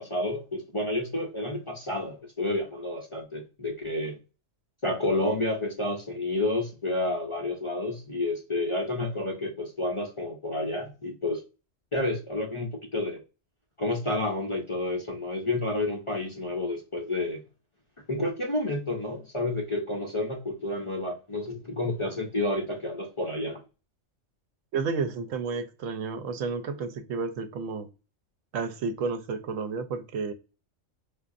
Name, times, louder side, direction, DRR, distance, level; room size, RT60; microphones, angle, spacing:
voice 1, 0.0-4.2 4.8-11.4 11.9-13.2 13.8-17.4 18.1-23.6, left 2 dB, 45° left, 0.4 m, -30 dB
voice 2, 24.7-27.9 28.5-30.3, right 4 dB, 85° right, 1.0 m, -31 dB
4.7 x 2.4 x 2.5 m
omnidirectional pair, 1.3 m